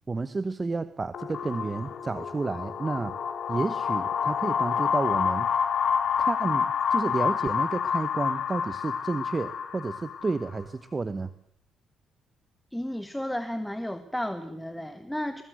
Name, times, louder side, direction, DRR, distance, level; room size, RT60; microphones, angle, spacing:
voice 1, 0.1-3.1 3.5-5.5 6.2-11.3, right 3 dB, 20° right, 13 dB, 1.0 m, -31 dB
sound 1, 1.1-10.6, left 7 dB, 55° left, 4.2 m, -28 dB
voice 2, 12.7-15.4, left 1 dB, 5° left, 9 dB, 1.6 m, -33 dB
21.5 x 21.5 x 9.3 m, 0.67 s
cardioid pair, 135°, 0 cm